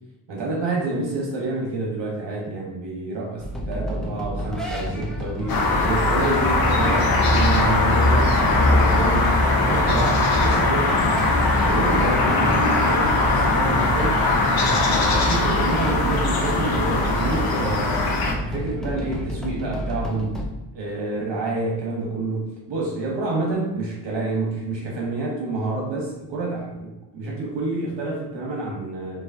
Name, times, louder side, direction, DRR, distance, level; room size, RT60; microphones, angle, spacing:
voice 1, 0.3-11.3 11.6-14.2 14.6-18.0 18.4-29.2, right 2 dB, 85° right, -2 dB, 1.2 m, -28 dB
sound 1, 3.4-20.5, equal, ahead, 0.6 m, -29 dB
sound 2, 5.5-18.3, left 2 dB, 55° left, 0.8 m, -20 dB
4.7 x 3.1 x 2.7 m, 0.99 s
wide cardioid pair, 110°, 42 cm